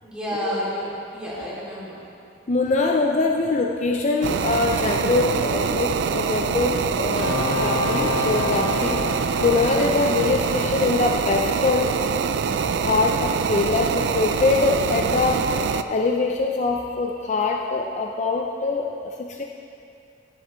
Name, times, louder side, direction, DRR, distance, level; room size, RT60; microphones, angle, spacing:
voice 1, 0.0-2.0 7.1-7.5, equal, 5° right, -8 dB, 2.5 m, -31 dB
voice 2, 2.5-12.0 12.8-15.5 15.9-19.4, left 3 dB, 40° left, 1 dB, 0.5 m, -23 dB
sound 1, 4.2-15.8, right 6 dB, 80° right, 0.4 m, -24 dB
sound 2, 7.2-10.9, left 3 dB, 85° left, 1.4 m, -29 dB
16.5 x 7.8 x 3.1 m, 2.6 s
head